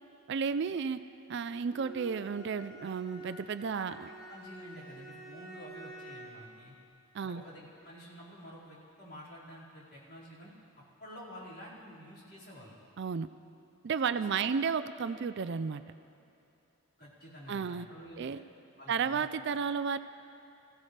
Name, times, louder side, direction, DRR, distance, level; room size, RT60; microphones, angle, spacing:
voice 1, 0.3-1.0 1.3-4.1 7.1-7.4 13.0-13.3 13.8-15.8 17.5-17.9 18.2-18.4 18.9-20.0, right 6 dB, 55° right, 12 dB, 0.4 m, -32 dB
Bowed string instrument, 1.6-6.5, right 1 dB, ahead, 4.8 m, -48 dB
voice 2, 4.3-6.7 7.2-12.8 14.1-14.5 17.0-18.4 18.8-19.3, equal, 45° left, -8 dB, 4.7 m, -50 dB
25.0 x 15.5 x 3.3 m, 2.7 s
head